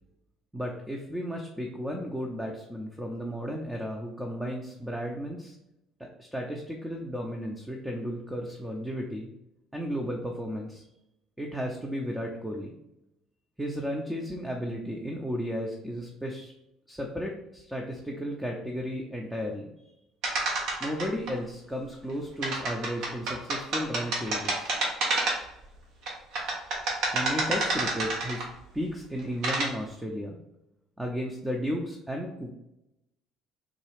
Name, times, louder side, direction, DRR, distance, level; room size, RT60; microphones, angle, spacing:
voice 1, 0.5-5.6 6.0-9.3 9.7-10.8 11.4-12.7 13.6-16.5 16.9-19.9 20.8-24.8 27.1-28.5 28.7-30.4 31.0-32.5, equal, 5° right, 0 dB, 0.6 m, -34 dB
sound 1, 20.2-21.3 22.4-25.6 26.1-28.6 29.2-29.7, right 2 dB, 65° right, 1.0 m, -29 dB
3.7 x 2.3 x 3.3 m, 0.87 s
hypercardioid pair, 65°, 0 cm